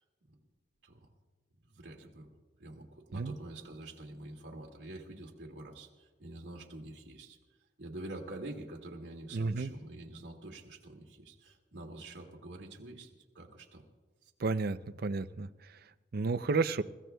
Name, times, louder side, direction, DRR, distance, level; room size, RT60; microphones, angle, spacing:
voice 1, 1.7-2.3 2.6-7.4 7.8-13.8 14.2-14.3, right 2 dB, 75° right, 0 dB, 2.0 m, -47 dB
voice 2, 9.3-9.7 14.4-15.5 16.1-16.8, right 4 dB, 55° right, 12 dB, 0.5 m, -31 dB
29.0 x 15.5 x 2.3 m, 1.3 s
head